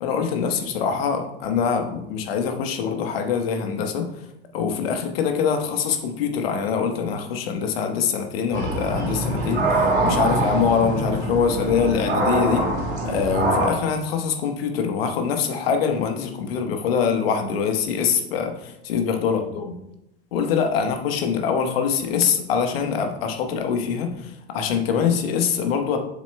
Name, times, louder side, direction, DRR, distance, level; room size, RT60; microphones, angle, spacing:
voice 1, 0.0-4.1 4.5-12.6 13.0-19.7 20.3-26.0, left 6 dB, 60° left, 5 dB, 1.3 m, -24 dB
sound 1, 8.5-13.7, right 1 dB, 80° right, 2.3 m, -23 dB
7.3 x 7.3 x 2.2 m, 0.82 s
figure-of-eight pair, 90°, 33 cm